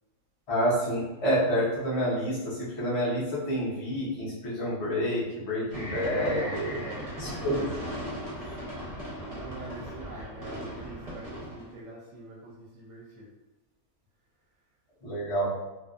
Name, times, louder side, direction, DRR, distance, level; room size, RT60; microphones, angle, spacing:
voice 1, 0.5-6.8 7.2-7.7 8.5-8.6 15.0-15.5, equal, 40° left, -6 dB, 0.4 m, -28 dB
sound 1, 5.7-11.7, equal, 40° right, 0.6 m, -38 dB
voice 2, 6.2-7.6 9.3-13.3, right 2 dB, 70° right, -4 dB, 0.8 m, -43 dB
2.6 x 2.2 x 2.4 m, 1.1 s
omnidirectional pair, 1.6 m